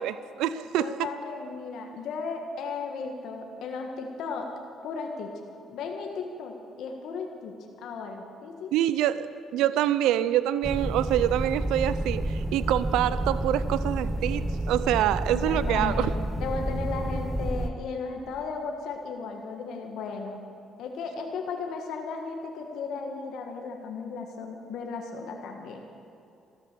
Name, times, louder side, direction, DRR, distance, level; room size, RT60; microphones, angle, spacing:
voice 1, 0.0-0.9 8.7-16.1, right 12 dB, 90° right, 15 dB, 0.4 m, -26 dB
voice 2, 0.8-4.5 4.8-5.3 5.7-7.5 7.8-8.7 15.3-16.1 16.4-20.4 20.8-25.8, left 4 dB, 75° left, 2 dB, 1.6 m, -35 dB
sound 1, 10.6-17.7, right 1 dB, 10° right, 0.8 m, -30 dB
14.0 x 13.0 x 6.9 m, 2.7 s
cardioid pair, 85°, 0 cm